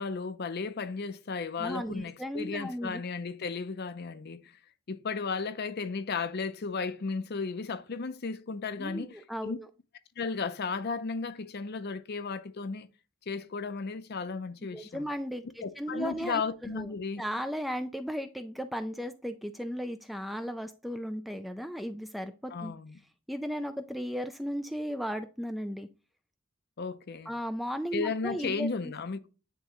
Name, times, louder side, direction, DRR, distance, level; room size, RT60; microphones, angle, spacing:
voice 1, 0.0-4.5 4.9-9.6 10.2-12.9 13.3-15.1 15.6-17.2 22.5-23.0 26.8-27.3 27.9-29.3, left 4 dB, 50° left, 0.6 m, -34 dB
voice 2, 1.6-3.0 8.8-9.7 14.7-16.9 17.2-22.7 23.3-25.9 27.3-28.9, equal, ahead, 0.3 m, -36 dB
9.2 x 3.7 x 3.0 m
head